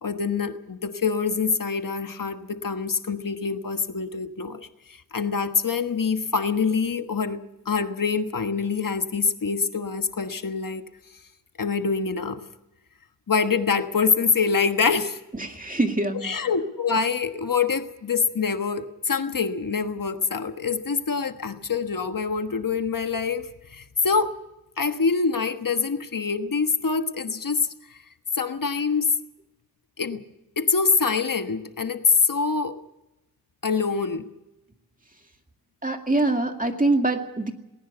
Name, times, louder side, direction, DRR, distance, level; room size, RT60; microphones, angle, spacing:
voice 1, 0.0-10.9 11.6-12.4 13.3-15.2 16.2-24.4 24.8-27.7 28.3-29.1 30.0-30.2 30.6-32.8 33.6-34.2, left 5 dB, 65° left, 8 dB, 1.4 m, -25 dB
voice 2, 15.3-16.3 35.8-37.5, right 2 dB, 25° right, 5 dB, 2.2 m, -24 dB
20.0 x 17.5 x 8.0 m, 0.93 s
wide cardioid pair, 85°, 36 cm